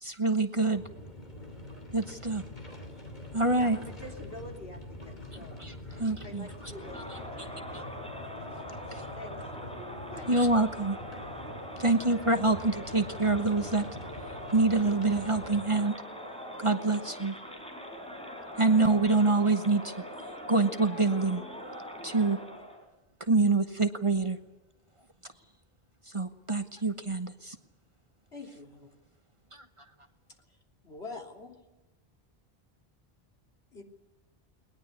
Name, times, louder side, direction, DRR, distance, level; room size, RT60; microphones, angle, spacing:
voice 1, 0.0-0.8 1.9-2.4 3.3-3.8 5.3-5.7 6.0-6.5 8.9-9.0 10.3-11.0 11.8-13.8 14.5-15.9 16.6-17.4 18.6-19.9 20.5-21.4 22.0-22.4 23.3-24.4 26.1-27.6 29.5-29.6, right 3 dB, 30° right, 8 dB, 1.2 m, -26 dB
sound 1, 0.6-15.6, left 1 dB, 45° left, 3.3 m, -45 dB
voice 2, 3.5-5.5 5.9-7.8 9.1-9.5 9.9-10.3, left 1 dB, 65° left, 2 dB, 3.4 m, -47 dB
Crowd, 6.5-22.8, equal, 5° left, 4.7 m, -42 dB
voice 3, 28.3-28.9 30.5-30.6 30.8-31.6 33.7-33.8, left 3 dB, 85° left, 2 dB, 3.6 m, -44 dB
20.5 x 20.0 x 8.5 m, 1.1 s
omnidirectional pair, 1.0 m